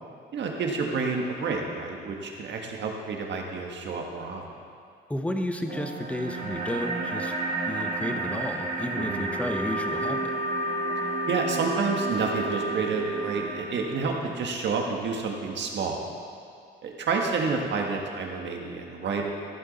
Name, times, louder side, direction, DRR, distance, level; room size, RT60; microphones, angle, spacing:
voice 1, 0.3-4.4 9.1-9.3 11.3-16.0 16.8-19.2, right 4 dB, 65° right, 1 dB, 1.6 m, -29 dB
voice 2, 5.1-7.3 7.7-10.3, left 1 dB, 5° left, 5 dB, 0.9 m, -32 dB
sound 1, 5.7-14.7, right 3 dB, 45° right, 1.9 m, -34 dB
Wind instrument woodwind instrument, 8.9-13.4, right 1 dB, 35° left, 2.6 m, -31 dB
14.5 x 7.3 x 4.2 m, 2.3 s
cardioid pair, 90°, 20 cm